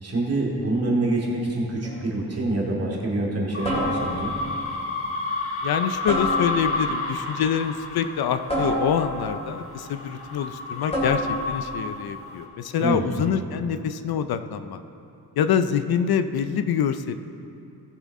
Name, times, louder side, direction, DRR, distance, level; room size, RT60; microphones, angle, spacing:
voice 1, 0.0-4.3 12.8-13.2, right 2 dB, 40° right, -4 dB, 2.5 m, -26 dB
sound 1, 1.8-2.2 3.6-4.4 6.1-6.9 8.5-9.4 10.9-11.5, equal, 15° left, 3.0 m, -28 dB
sound 2, 3.5-12.4, left 3 dB, 35° left, 1.3 m, -31 dB
voice 2, 5.6-14.8 15.4-17.2, left 8 dB, 65° left, 10 dB, 0.5 m, -25 dB
19.0 x 7.0 x 3.6 m, 2.7 s
wide cardioid pair, 155°, 39 cm